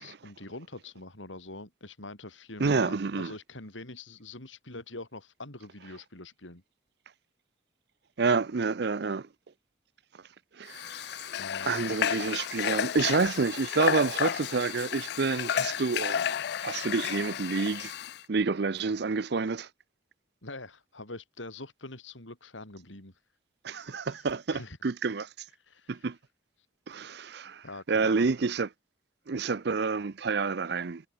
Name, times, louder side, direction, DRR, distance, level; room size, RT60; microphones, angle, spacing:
voice 1, 0.0-6.6 11.4-11.7 20.4-23.2 23.7-24.8 25.6-26.1 27.6-28.3, left 2 dB, 90° left, 4.9 m, -44 dB
voice 2, 2.6-3.3 8.2-9.3 10.6-11.3 11.7-17.9 18.3-19.7 23.6-25.3 25.9-26.2 26.9-28.7 29.3-31.0, right 4 dB, 60° right, 0.6 m, -29 dB
Water / Water tap faucet, 10.7-18.2, left 9 dB, 60° left, 0.3 m, -32 dB
head